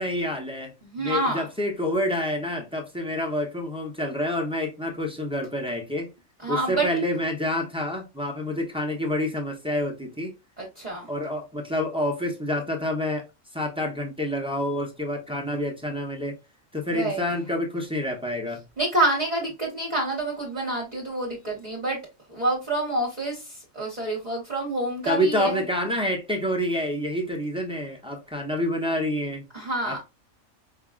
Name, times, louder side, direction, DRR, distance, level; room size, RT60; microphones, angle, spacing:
voice 1, 0.0-0.7 1.0-6.1 6.5-10.3 11.1-13.2 13.5-16.4 16.7-18.6 25.0-29.4 29.8-30.0, left 1 dB, 5° right, 0.5 m, -28 dB
voice 2, 0.8-1.4 6.4-6.9 10.6-11.1 16.9-17.4 18.8-22.0 22.3-25.6 29.5-30.0, right 2 dB, 30° right, 1.2 m, -27 dB
5.4 x 2.4 x 2.3 m
omnidirectional pair, 1.5 m